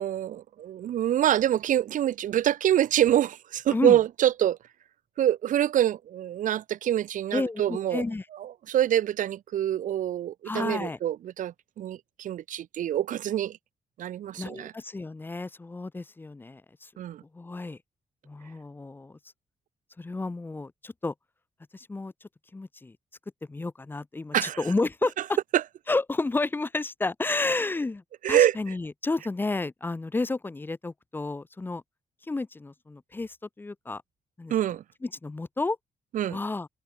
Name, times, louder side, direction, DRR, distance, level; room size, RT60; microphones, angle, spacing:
voice 1, 0.0-4.6 5.2-8.0 8.4-13.6 14.0-14.7 17.0-17.2 24.3-24.6 25.5-25.6 28.2-28.6 34.5-34.8 36.1-36.4, right 11 dB, 75° right, 0.9 m, -25 dB
voice 2, 7.3-8.2 10.5-11.0 14.4-16.9 17.3-17.8 18.3-19.2 20.0-21.1 21.7-22.1 22.5-23.0 23.5-25.4 25.9-31.8 32.3-34.0 34.4-34.5 35.0-35.8 36.3-36.7, left 3 dB, 15° left, 1.2 m, -31 dB
wide cardioid pair, 180°, 13 cm